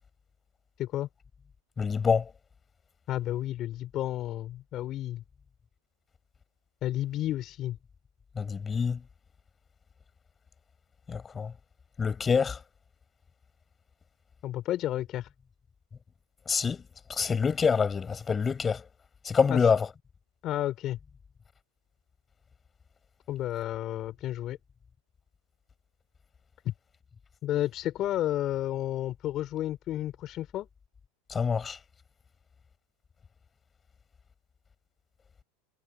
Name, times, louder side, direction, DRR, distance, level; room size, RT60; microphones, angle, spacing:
voice 1, 1.8-2.3 8.4-9.0 11.1-11.5 12.0-12.6 16.5-16.8 17.1-18.8 19.2-19.9 31.3-31.8, left 6 dB, 20° left, 7.8 m, -26 dB
voice 2, 3.1-5.2 6.8-7.8 14.4-15.3 19.5-19.6 20.4-21.0 23.3-24.6 26.6-26.7 27.4-30.7, left 13 dB, 45° left, 5.7 m, -31 dB
hypercardioid pair, 100°, 0 cm